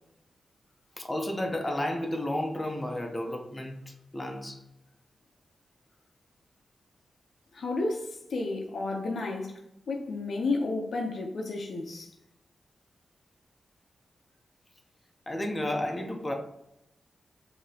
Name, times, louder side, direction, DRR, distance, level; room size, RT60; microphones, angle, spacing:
voice 1, 1.0-4.6 15.3-16.3, left 1 dB, 20° left, 0.6 m, -32 dB
voice 2, 7.5-9.6 9.9-12.1, left 3 dB, 65° left, 0.7 m, -32 dB
4.9 x 2.8 x 2.8 m
wide cardioid pair, 120°, 0 cm